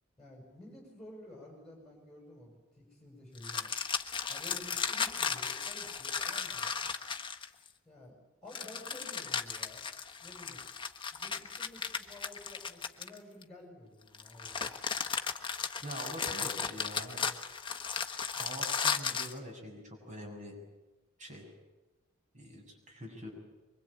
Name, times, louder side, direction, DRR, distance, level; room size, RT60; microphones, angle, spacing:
voice 1, 0.2-3.7 4.3-6.7 7.8-8.2 8.4-9.9 10.2-10.6 11.1-14.7, left 1 dB, 5° left, 0 dB, 7.1 m, -51 dB
Gore Cabbage, 3.4-7.7 8.5-13.4 14.1-19.4, left 6 dB, 25° left, 1.3 m, -35 dB
voice 2, 15.8-17.2 18.3-20.5 21.2-21.5 22.3-23.3, equal, 35° right, 1 dB, 7.3 m, -44 dB
25.0 x 24.0 x 8.7 m, 1.1 s
head